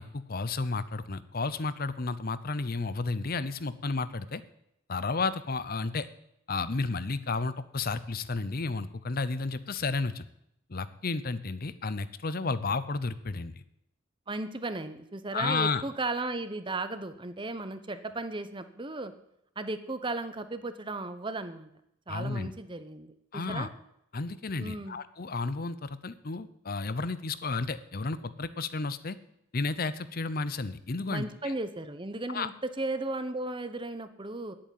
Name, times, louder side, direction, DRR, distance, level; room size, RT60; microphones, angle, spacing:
voice 1, 0.0-4.4 4.9-6.1 6.5-10.3 10.7-13.6 15.3-15.8 22.1-22.5 23.3-23.7 24.1-29.2 29.5-31.5 32.3-32.5, left 3 dB, 45° left, 15 dB, 0.7 m, -32 dB
voice 2, 14.3-19.1 19.6-21.7 22.1-23.7 24.6-25.0 31.1-34.6, right 2 dB, 25° right, 10 dB, 0.9 m, -35 dB
10.0 x 8.8 x 9.3 m, 0.78 s
head